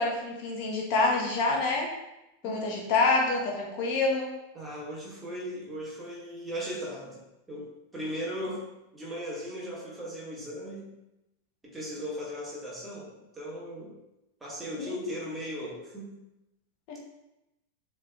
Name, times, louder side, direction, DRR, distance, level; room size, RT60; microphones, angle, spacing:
voice 1, 0.0-1.9 2.4-4.3 14.8-15.1 16.9-17.0, left 3 dB, 45° left, 0 dB, 0.8 m, -27 dB
voice 2, 4.5-7.2 7.5-11.0 11.6-14.0 14.4-16.2, equal, 10° right, -5 dB, 1.6 m, -38 dB
6.8 x 3.3 x 2.3 m, 0.92 s
figure-of-eight pair, 90°, 0 cm